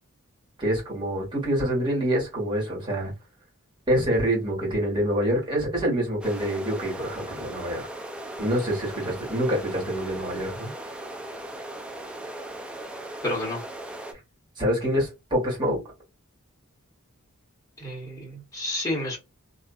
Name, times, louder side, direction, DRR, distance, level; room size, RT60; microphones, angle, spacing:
voice 1, 0.6-3.1 3.9-7.9 8.4-10.7 14.6-15.8, equal, 20° right, 1.4 m, -26 dB
sound 1, 6.2-14.1, right 1 dB, 5° right, 0.4 m, -38 dB
voice 2, 13.2-13.6 17.8-19.2, left 1 dB, 15° left, 1.2 m, -30 dB
2.5 x 2.4 x 2.3 m
head